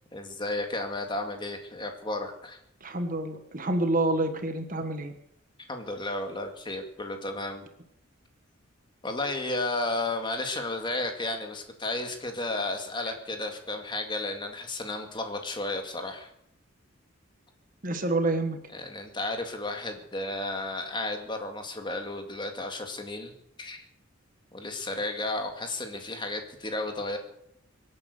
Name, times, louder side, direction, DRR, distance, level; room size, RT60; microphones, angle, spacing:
voice 1, 0.1-2.6 5.7-7.6 9.0-16.3 18.7-23.3 23.6-23.8 24.5-27.2, left 2 dB, 20° left, 5 dB, 2.0 m, -33 dB
voice 2, 2.8-5.1 17.8-18.6, right 2 dB, 40° right, 7 dB, 1.3 m, -28 dB
24.5 x 8.9 x 6.6 m, 0.75 s
head